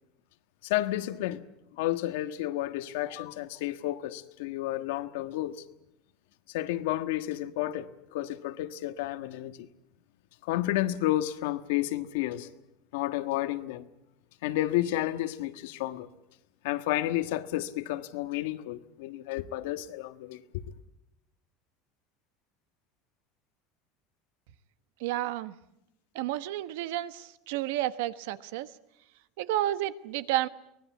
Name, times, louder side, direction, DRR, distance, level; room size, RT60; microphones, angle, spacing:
voice 1, 0.6-1.4 1.8-5.5 6.5-9.7 10.4-12.5 12.9-13.9 14.4-16.1 16.6-20.4, left 14 dB, 80° left, 1.4 m, -31 dB
voice 2, 25.0-25.6 26.1-28.7 29.4-30.5, right 14 dB, 80° right, 1.2 m, -31 dB
24.0 x 19.0 x 8.4 m
cardioid pair, 165°, 0 cm